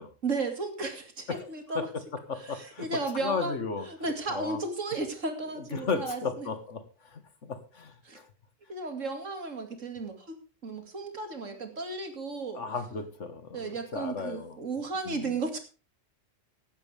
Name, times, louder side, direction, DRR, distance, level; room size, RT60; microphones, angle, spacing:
voice 1, 0.2-1.9 2.4-6.5 8.0-8.2 8.7-10.4 10.6-12.6 12.9-13.0 13.5-15.6, right 3 dB, 80° right, 6 dB, 2.9 m, -34 dB
voice 2, 2.3-2.9 3.1-3.9 4.3-4.6 5.6-6.8 7.1-8.3 12.5-14.6 15.1-15.3, left 4 dB, 70° left, 10 dB, 1.9 m, -34 dB
15.5 x 11.5 x 3.5 m, 0.35 s
omnidirectional pair, 1.3 m